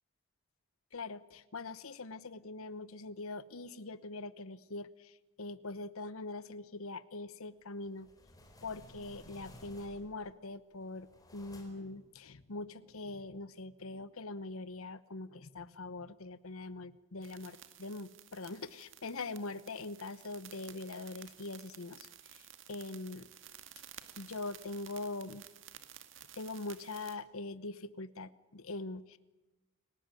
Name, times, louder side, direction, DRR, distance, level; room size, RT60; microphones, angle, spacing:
voice 1, 0.9-8.1 8.6-23.3 24.2-25.5 26.3-29.2, left 2 dB, 75° left, 15 dB, 1.0 m, -43 dB
sound 1, 7.8-10.3 10.7-12.0, left 1 dB, 15° left, 4.6 m, -56 dB
sound 2, 17.2-27.2, right 10 dB, 60° right, 2.1 m, -54 dB
30.0 x 18.5 x 9.1 m, 1.1 s
head